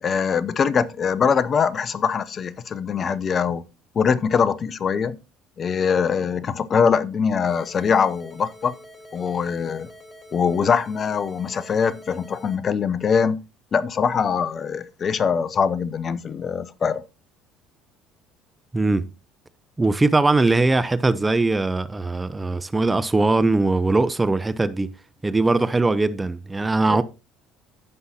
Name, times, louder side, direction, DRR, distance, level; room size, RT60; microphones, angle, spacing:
voice 1, 0.0-3.6 3.9-5.2 5.6-8.8 9.1-9.9 10.3-13.4 13.7-17.0 26.9-27.0, left 6 dB, 40° left, 0.8 m, -22 dB
sound 1, 7.5-12.5, equal, 20° left, 3.7 m, -46 dB
voice 2, 18.7-19.1 19.8-24.9 25.2-27.0, right 3 dB, 15° right, 0.7 m, -20 dB
15.5 x 5.6 x 2.8 m
hypercardioid pair, 65°, 0 cm